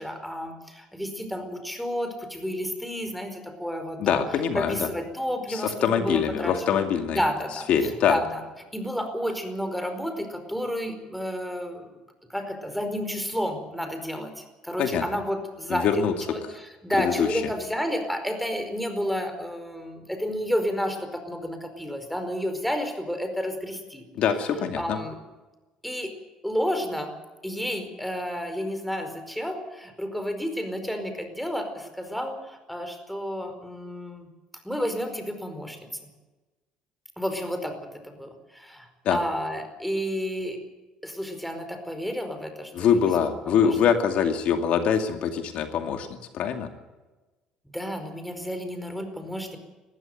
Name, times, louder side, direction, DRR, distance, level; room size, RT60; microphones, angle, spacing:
voice 1, 0.0-4.2 4.5-8.4 8.7-12.0 12.3-24.0 24.8-25.2 25.8-26.1 26.4-27.1 27.4-34.3 34.6-36.1 37.2-40.6 41.0-43.8 47.7-49.6, equal, ahead, 7 dB, 4.8 m, -31 dB
voice 2, 4.0-4.9 5.5-7.2 7.7-8.2 14.8-15.0 15.7-16.1 17.0-17.4 24.1-25.0 39.0-39.2 42.7-46.1 46.3-46.7, left 7 dB, 65° left, 6 dB, 2.4 m, -24 dB
20.5 x 15.0 x 9.2 m, 1.2 s
supercardioid pair, 95°, 2 cm